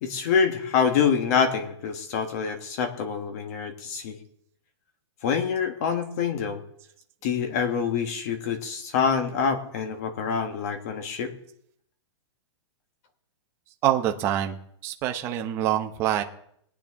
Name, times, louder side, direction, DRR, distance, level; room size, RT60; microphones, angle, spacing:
voice 1, 0.0-4.2 5.2-6.6 7.2-11.3, left 6 dB, 35° left, 7 dB, 1.5 m, -26 dB
voice 2, 13.8-16.2, right 11 dB, 15° right, 4 dB, 0.8 m, -26 dB
21.5 x 8.9 x 3.7 m, 0.70 s
hypercardioid pair, 175°, 15 cm